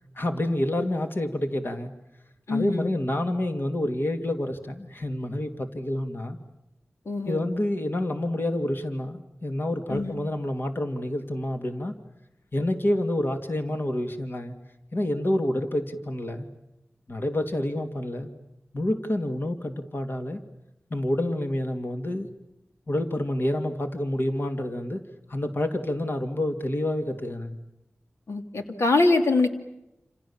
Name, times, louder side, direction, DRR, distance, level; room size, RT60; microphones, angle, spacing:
voice 1, 0.2-1.9 2.5-6.4 7.3-11.9 12.5-14.5 14.9-16.5 17.1-18.3 18.7-20.4 20.9-22.3 22.9-25.0 25.3-27.6, left 1 dB, 50° left, 6 dB, 2.7 m, -28 dB
voice 2, 2.5-2.9 7.1-7.4 9.9-10.1 28.3-29.5, left 3 dB, 85° left, 5 dB, 2.8 m, -23 dB
29.0 x 28.0 x 7.4 m, 0.88 s
wide cardioid pair, 90°, 5 cm